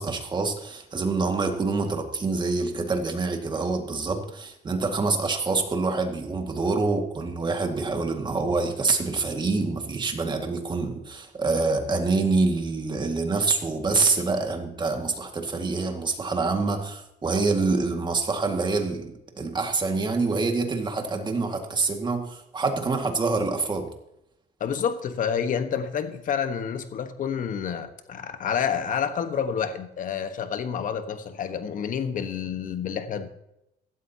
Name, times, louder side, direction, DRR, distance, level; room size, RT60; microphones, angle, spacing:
voice 1, 0.0-23.9, right 3 dB, 25° right, 4 dB, 2.1 m, -26 dB
voice 2, 24.6-33.3, left 7 dB, 50° left, 9 dB, 1.4 m, -29 dB
16.5 x 12.5 x 2.9 m, 0.84 s
cardioid pair, 110°, 17 cm